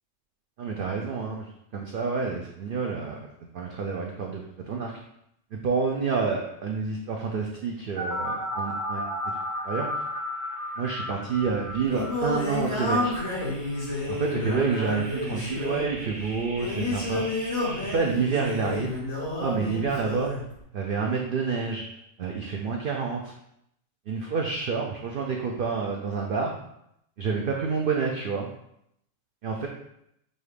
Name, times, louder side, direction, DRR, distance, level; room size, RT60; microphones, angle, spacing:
voice 1, 0.6-1.5 1.7-3.2 3.5-4.9 5.5-9.1 9.6-9.9 10.8-13.1 14.1-17.3 17.9-19.0 19.4-20.3 20.7-21.8 22.2-23.2 24.1-26.6 27.2-28.5 29.4-29.7, right 5 dB, 70° right, 0 dB, 0.5 m, -28 dB
sound 1, 8.0-18.0, equal, 5° left, 1.0 m, -35 dB
Singing, 11.4-20.4, left 2 dB, 70° left, 2.2 m, -30 dB
5.4 x 2.4 x 3.3 m, 0.76 s
omnidirectional pair, 1.4 m